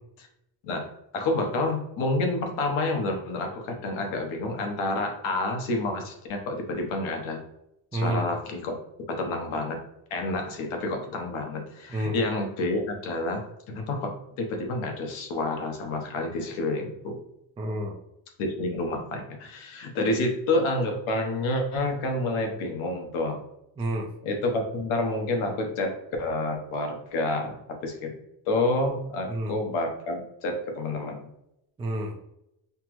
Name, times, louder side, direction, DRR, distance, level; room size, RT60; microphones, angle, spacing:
voice 1, 1.1-7.4 7.9-8.8 9.1-9.8 10.1-17.2 18.4-23.4 24.2-28.1 28.5-31.3, left 2 dB, 85° left, 3 dB, 1.0 m, -29 dB
voice 2, 7.9-8.3 11.9-12.2 17.6-18.0 23.8-24.1 29.3-29.5 31.8-32.2, right 1 dB, 15° right, 0 dB, 0.3 m, -29 dB
5.7 x 2.0 x 3.0 m, 0.82 s
cardioid pair, 150°, 48 cm